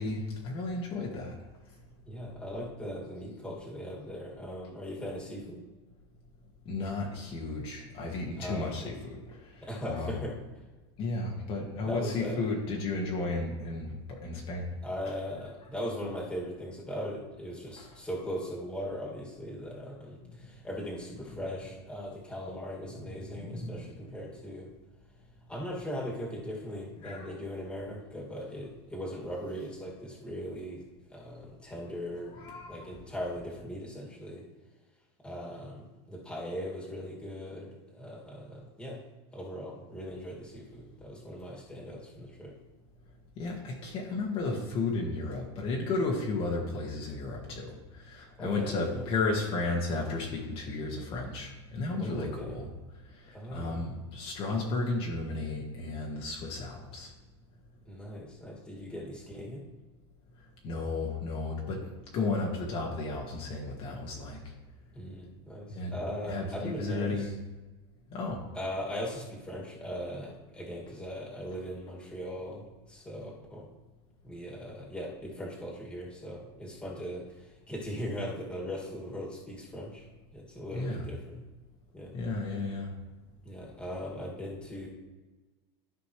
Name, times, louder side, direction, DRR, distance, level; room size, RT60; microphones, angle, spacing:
voice 1, 0.0-1.3 6.6-10.2 11.0-14.7 17.8-17.9 21.3-21.4 23.0-23.9 27.0-27.6 32.3-32.9 43.4-52.7 53.1-57.1 60.6-61.8 62.1-64.4 65.7-65.9 66.2-67.3 68.1-68.4 80.7-81.0 82.1-82.9, left 3 dB, 40° left, -1 dB, 1.6 m, -34 dB
voice 2, 2.1-5.6 8.4-8.9 9.7-10.4 11.8-12.4 14.8-24.7 25.5-30.8 31.1-32.3 32.7-34.4 35.2-39.0 39.3-42.5 48.4-49.0 52.0-52.6 53.3-53.8 57.9-59.6 64.9-67.3 68.5-73.7 74.2-80.0 80.3-81.4 81.9-82.1 83.4-84.9, equal, 5° left, -3 dB, 2.2 m, -39 dB
13.0 x 5.2 x 3.2 m, 1.2 s
supercardioid pair, 135°, 14 cm